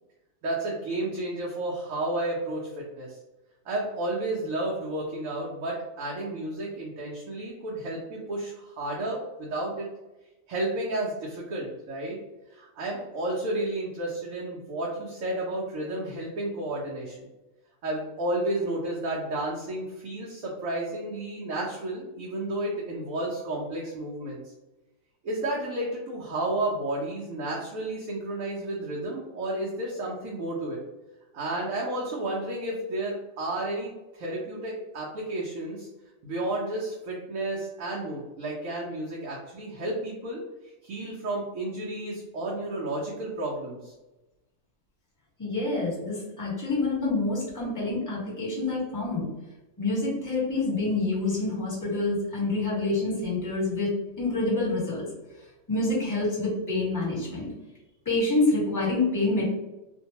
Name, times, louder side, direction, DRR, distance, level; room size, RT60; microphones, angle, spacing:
voice 1, 0.4-3.2 3.6-9.9 10.5-12.2 12.5-17.3 17.8-24.5 25.2-30.8 31.3-35.9 36.2-40.4 40.8-43.9, right 1 dB, 80° right, -4 dB, 1.0 m, -32 dB
voice 2, 45.4-49.3 49.8-53.9 54.2-55.1 55.7-57.5 58.0-59.4, left 2 dB, 15° left, -6 dB, 1.1 m, -27 dB
2.5 x 2.2 x 2.8 m, 1.0 s
omnidirectional pair, 1.4 m